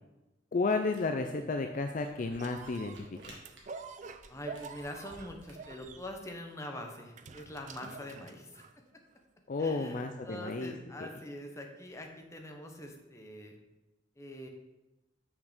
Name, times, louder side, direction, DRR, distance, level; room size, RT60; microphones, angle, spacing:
voice 1, 0.5-3.4 9.5-10.7, left 3 dB, 45° left, 6 dB, 0.4 m, -32 dB
Camera, 1.0-6.1, right 2 dB, 75° right, 1.8 m, -57 dB
sound 1, 2.4-8.9 9.6-9.7, right 4 dB, 40° right, 0.4 m, -47 dB
voice 2, 4.0-8.6 9.6-13.5 14.2-14.5, left 1 dB, 15° left, 2 dB, 0.9 m, -44 dB
6.4 x 6.0 x 5.0 m, 1.0 s
head